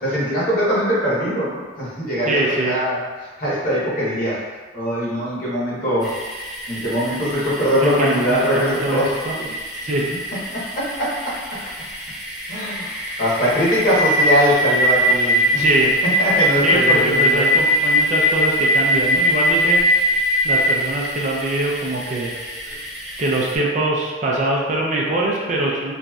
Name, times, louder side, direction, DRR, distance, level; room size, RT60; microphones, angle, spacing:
voice 1, 0.0-3.0 3.4-4.4 4.7-6.1 6.7-9.1 10.5-11.3 12.5-15.6 16.2-17.5, equal, 50° left, -9 dB, 1.2 m, -21 dB
voice 2, 2.3-2.8 7.8-9.5 9.8-10.3 15.6-15.9 16.6-19.9 20.4-22.8 23.2-25.9, right 2 dB, 40° right, -3 dB, 0.4 m, -23 dB
sound 1, 6.0-23.6, equal, ahead, 0.9 m, -22 dB
3.0 x 2.5 x 2.3 m, 1.4 s
head